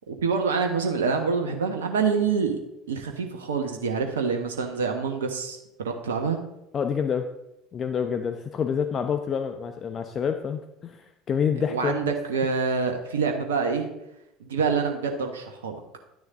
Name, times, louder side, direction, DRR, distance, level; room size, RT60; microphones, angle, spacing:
voice 1, 0.1-2.6 2.9-6.4 11.7-13.9 14.4-15.8, right 5 dB, 80° right, 4 dB, 1.1 m, -26 dB
voice 2, 6.7-7.3 7.7-12.1, left 7 dB, 40° left, 7 dB, 0.8 m, -27 dB
11.5 x 9.7 x 3.7 m, 0.86 s
hypercardioid pair, 65°, 0 cm